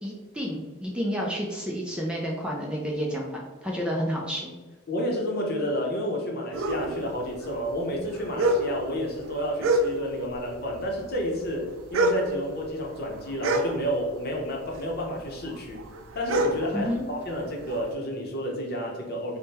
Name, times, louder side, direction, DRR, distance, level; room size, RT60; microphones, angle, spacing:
voice 1, 0.0-4.5 16.7-17.1, equal, 5° right, -2 dB, 0.4 m, -30 dB
voice 2, 4.9-15.8 16.1-19.4, equal, 50° left, -1 dB, 0.8 m, -30 dB
sound 1, 6.5-10.3 10.6-14.4 14.7-17.9, right 1 dB, 70° right, 0.4 m, -28 dB
3.5 x 2.2 x 4.1 m, 1.3 s
head